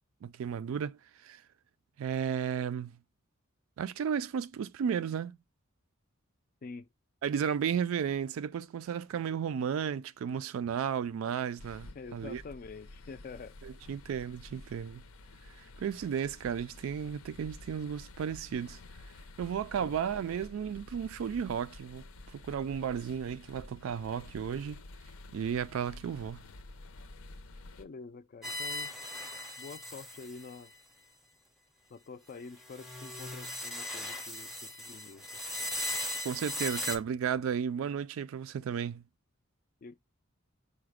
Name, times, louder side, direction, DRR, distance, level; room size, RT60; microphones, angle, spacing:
voice 1, 0.2-1.4 2.0-3.0 3.8-5.4 7.2-12.4 13.6-15.0 15.8-18.8 19.4-22.0 22.3-24.8 25.3-26.4 36.2-39.0, right 7 dB, 70° right, 0.3 m, -34 dB
sound 1, 11.6-27.8, left 2 dB, 85° left, 0.6 m, -50 dB
voice 2, 11.9-13.6 19.8-20.3 27.8-28.9 29.6-30.7 31.9-35.3 39.8-39.9, left 4 dB, 40° left, 0.4 m, -47 dB
sound 2, 28.4-30.7 32.6-37.0, left 1 dB, ahead, 0.6 m, -38 dB
4.8 x 2.1 x 4.8 m
head